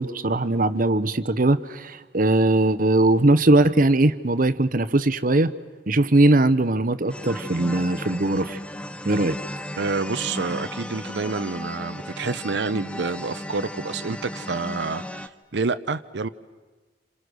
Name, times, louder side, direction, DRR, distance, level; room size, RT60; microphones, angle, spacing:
voice 1, 0.0-5.5 5.9-8.6 9.0-9.4, right 2 dB, 50° right, 14 dB, 1.0 m, -20 dB
sound 1, 7.1-15.3, left 1 dB, 5° left, 0.8 m, -35 dB
voice 2, 9.8-16.3, right 4 dB, 80° right, 11 dB, 0.7 m, -28 dB
28.5 x 27.5 x 6.4 m, 1.3 s
head